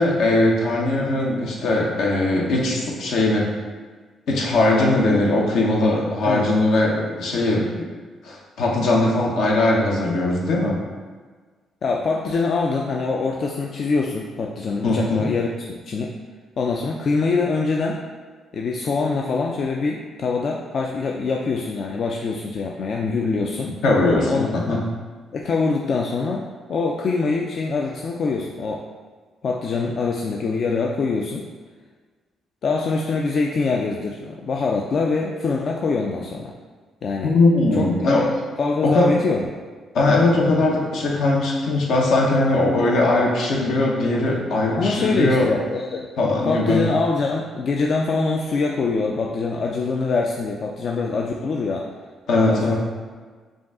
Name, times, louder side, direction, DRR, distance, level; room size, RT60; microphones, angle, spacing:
voice 1, 0.0-3.5 4.3-7.7 8.2-10.8 14.8-15.3 23.8-24.8 37.2-38.3 38.8-39.1 39.9-45.5 46.2-46.8 52.3-52.7, left 2 dB, 80° left, -2 dB, 0.8 m, -20 dB
voice 2, 11.8-15.6 15.9-16.1 16.6-18.0 18.5-23.8 24.3-24.8 25.3-28.8 29.4-31.5 32.6-36.5 37.0-37.3 37.7-38.3 38.6-39.4 42.6-42.7 44.7-46.1 46.4-51.8 52.5-52.7, left 4 dB, 55° left, -1 dB, 0.3 m, -24 dB
5.0 x 2.3 x 3.6 m, 1.5 s
cardioid pair, 90°, 0 cm